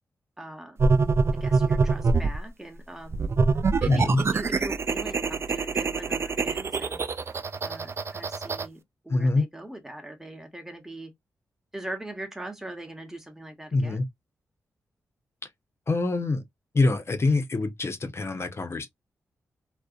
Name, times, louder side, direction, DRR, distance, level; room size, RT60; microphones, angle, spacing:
voice 1, 0.4-0.8 1.4-3.2 3.8-7.0 7.6-11.1 11.7-14.0, right 1 dB, 5° right, 0.9 m, -41 dB
sound 1, 0.8-2.4 3.1-8.7, right 4 dB, 40° right, 0.3 m, -25 dB
voice 2, 3.9-4.2 9.1-9.4 13.7-14.1 15.9-16.4 16.7-18.9, left 3 dB, 40° left, 0.6 m, -25 dB
2.6 x 2.0 x 2.4 m
supercardioid pair, 45°, 6 cm